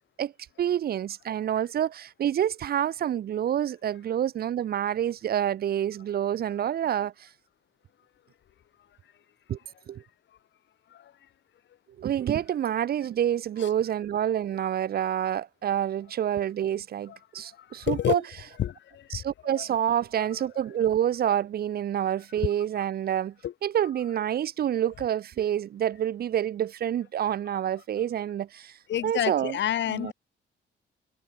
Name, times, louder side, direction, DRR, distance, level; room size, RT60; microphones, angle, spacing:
voice 1, 0.6-7.3 9.5-9.6 9.9-10.0 12.0-18.2 19.1-23.3 23.6-28.8 29.0-29.6 29.9-30.1, right 10 dB, 50° right, 0.5 m, -28 dB
voice 2, 17.5-18.2 18.6-19.6 20.2-20.3 23.4-23.5 24.8-24.9 28.9-30.1, left 11 dB, 65° left, 1.5 m, -30 dB
cardioid pair, 90°, 20 cm